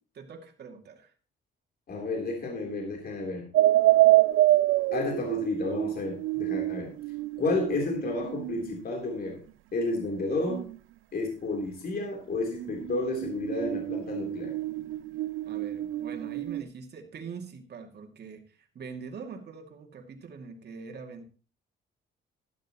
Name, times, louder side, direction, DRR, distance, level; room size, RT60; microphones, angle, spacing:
voice 1, 0.1-1.1 15.4-21.2, right 5 dB, 55° right, 3 dB, 2.5 m, -43 dB
voice 2, 1.9-3.5 4.9-6.9 7.4-9.4 9.7-10.7 11.1-14.5, left 2 dB, 50° left, 0 dB, 3.6 m, -31 dB
sound 1, 3.5-8.7 10.5-10.8 12.5-16.6, right 16 dB, 90° right, 0.5 m, -26 dB
12.5 x 12.0 x 3.0 m, 0.36 s
cardioid pair, 90°, 20 cm